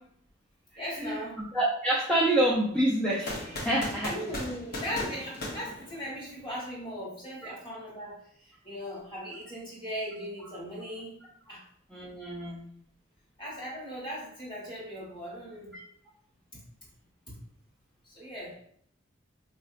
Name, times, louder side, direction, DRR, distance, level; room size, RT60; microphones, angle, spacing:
voice 1, 0.8-1.4 4.0-11.2 11.5-11.6 13.4-15.8 18.0-18.5, equal, 25° left, -5 dB, 1.4 m, -38 dB
voice 2, 1.5-4.1 11.9-12.6, right 1 dB, 5° left, -5 dB, 0.4 m, -27 dB
sound 1, 3.3-6.4, left 1 dB, 55° left, 0.8 m, -37 dB
4.1 x 2.6 x 2.5 m, 0.66 s
head